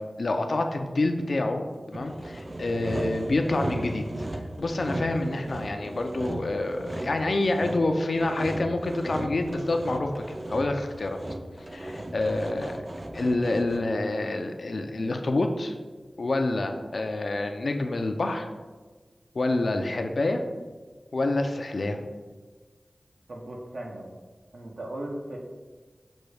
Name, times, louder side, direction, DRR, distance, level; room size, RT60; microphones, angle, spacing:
voice 1, 0.0-4.0 4.6-11.2 11.7-12.8 13.1-15.7 16.2-18.5 19.3-20.4 21.1-22.0, left 2 dB, 75° left, 5 dB, 0.4 m, -27 dB
Sawing, 1.9-14.0, right 1 dB, 35° right, 0.3 m, -36 dB
voice 2, 2.8-3.1 12.1-12.7 23.3-24.1 24.5-25.4, right 1 dB, 85° right, -1 dB, 0.7 m, -38 dB
6.1 x 2.3 x 3.3 m, 1.4 s
wide cardioid pair, 50°, 0 cm